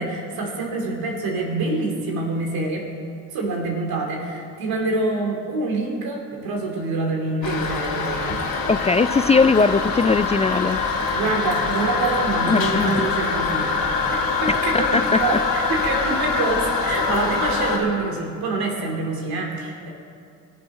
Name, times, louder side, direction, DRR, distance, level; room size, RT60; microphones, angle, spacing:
voice 1, 0.0-2.9 3.3-8.4 11.1-13.8 14.4-19.9, right 2 dB, 70° right, 0 dB, 3.0 m, -26 dB
Toilet flush, 7.4-17.8, left 4 dB, 65° left, 3.0 m, -24 dB
voice 2, 8.7-10.8 12.5-13.1 14.5-15.0, left 4 dB, 20° left, 12 dB, 0.4 m, -20 dB
21.0 x 7.6 x 5.5 m, 2.4 s
hypercardioid pair, 50°, 38 cm